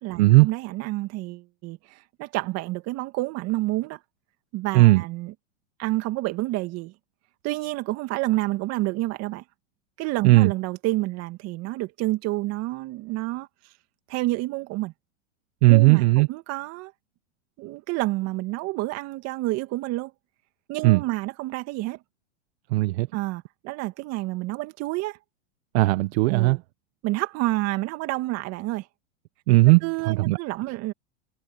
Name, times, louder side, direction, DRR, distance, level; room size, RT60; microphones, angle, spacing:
voice 1, 0.0-4.0 4.5-5.3 5.8-6.9 7.4-9.4 10.0-13.5 14.1-14.9 15.7-16.9 17.6-20.1 20.7-22.0 23.1-25.2 26.3-26.6 27.0-28.9 29.8-30.9, right 19 dB, 45° right, 2.3 m, -29 dB
voice 2, 15.6-16.3 20.8-21.0 22.7-23.1 25.7-26.6 29.5-30.4, right 21 dB, 60° right, 1.3 m, -17 dB
hypercardioid pair, 120°, 35 cm